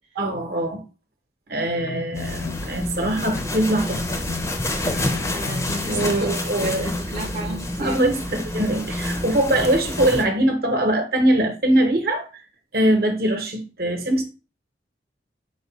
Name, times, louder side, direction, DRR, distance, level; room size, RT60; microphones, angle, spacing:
voice 1, 0.1-0.8 1.5-4.2 5.9-6.9 7.8-12.3 12.7-14.2, right 1 dB, 60° right, 0.9 m, -22 dB
sound 1, 1.8-2.8 3.0-3.6 3.9-6.3 6.6-7.0, left 5 dB, 80° left, 0.4 m, -34 dB
sound 2, 2.1-10.2, left 1 dB, 15° left, 0.5 m, -28 dB
voice 2, 5.3-8.0, right 2 dB, 35° right, 0.7 m, -34 dB
4.7 x 2.3 x 4.0 m
head